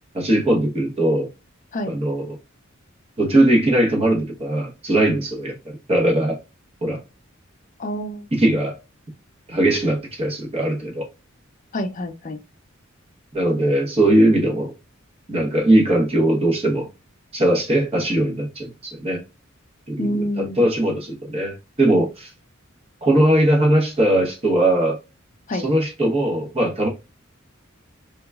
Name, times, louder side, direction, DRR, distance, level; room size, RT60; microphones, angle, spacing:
voice 1, 0.1-1.3 1.9-2.4 3.2-6.4 6.8-7.0 8.3-8.8 9.5-11.1 13.3-14.7 15.3-16.9 17.3-19.2 19.9-22.3 23.0-25.0 25.5-26.9, right 1 dB, 30° right, 1.0 m, -20 dB
voice 2, 7.8-8.3 11.7-12.4 20.0-20.6 25.5-25.7, equal, 40° left, 0.5 m, -27 dB
3.4 x 2.9 x 2.3 m
head